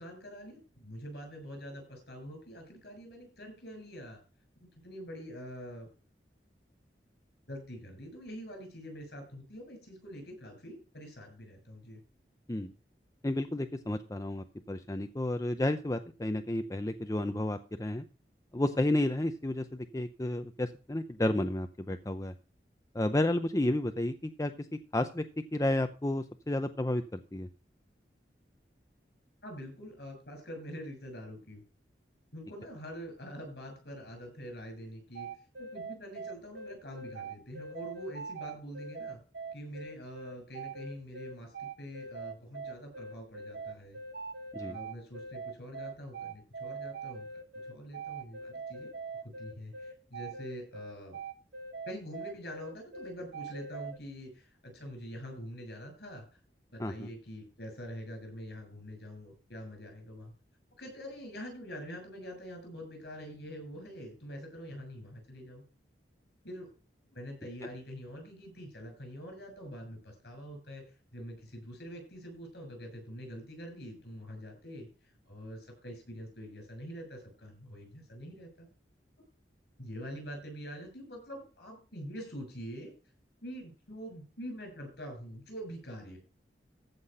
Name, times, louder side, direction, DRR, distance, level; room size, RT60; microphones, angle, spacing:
voice 1, 0.0-4.2 4.6-5.9 7.5-12.0 29.4-31.6 32.3-35.3 35.6-39.2 39.5-44.0 44.6-47.3 47.6-48.9 49.2-51.2 51.9-56.4 56.7-60.3 60.8-65.6 66.4-66.7 67.1-70.8 71.1-74.9 75.3-78.7 79.8-82.9 83.4-86.2, equal, 65° left, 4 dB, 7.0 m, -45 dB
voice 2, 13.2-18.0 18.5-22.3 22.9-25.2 25.5-27.5 44.5-44.8 56.8-57.1, left 1 dB, 20° left, 8 dB, 0.6 m, -31 dB
sound 1, 35.1-54.0, right 4 dB, 65° right, 1.2 m, -42 dB
14.5 x 5.8 x 5.5 m, 0.35 s
head